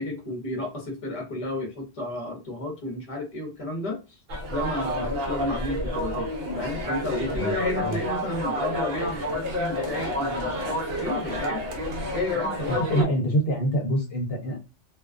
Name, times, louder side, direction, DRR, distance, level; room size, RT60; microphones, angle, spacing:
voice 1, 0.0-4.2 4.5-6.3 6.6-11.6 12.1-13.1, left 2 dB, 35° left, 1 dB, 0.7 m, -32 dB
sound 1, 4.3-13.0, equal, 60° right, 0.8 m, -29 dB
voice 2, 12.7-14.6, right 1 dB, 65° left, 0 dB, 0.9 m, -25 dB
2.3 x 2.3 x 2.3 m, 0.29 s
omnidirectional pair, 1.2 m